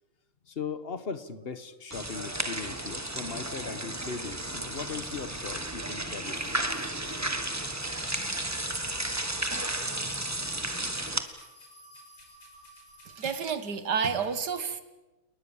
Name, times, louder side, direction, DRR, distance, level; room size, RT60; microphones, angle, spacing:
voice 1, 0.5-6.6, left 5 dB, 35° left, 12 dB, 1.2 m, -38 dB
sound 1, 1.9-11.2, right 1 dB, 10° right, 1.1 m, -33 dB
sound 2, 2.4-13.6, left 1 dB, 70° left, 6.4 m, -56 dB
voice 2, 13.1-14.8, right 6 dB, 50° right, 10 dB, 2.0 m, -30 dB
29.5 x 19.5 x 7.2 m, 1.1 s
omnidirectional pair, 2.4 m